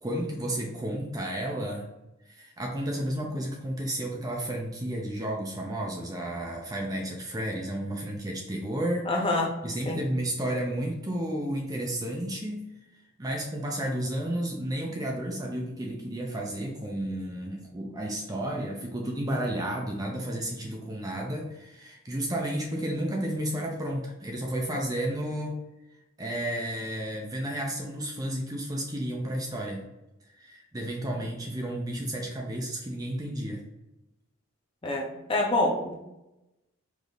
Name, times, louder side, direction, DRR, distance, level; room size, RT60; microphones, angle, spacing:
voice 1, 0.0-1.9 2.3-9.1 9.6-12.6 13.2-25.6 26.2-29.8 30.4-33.6, right 1 dB, 15° right, 0 dB, 0.5 m, -32 dB
voice 2, 9.1-9.5 9.8-10.0 34.8-35.9, left 2 dB, 25° left, -1 dB, 0.7 m, -26 dB
5.0 x 2.6 x 3.9 m, 0.94 s
head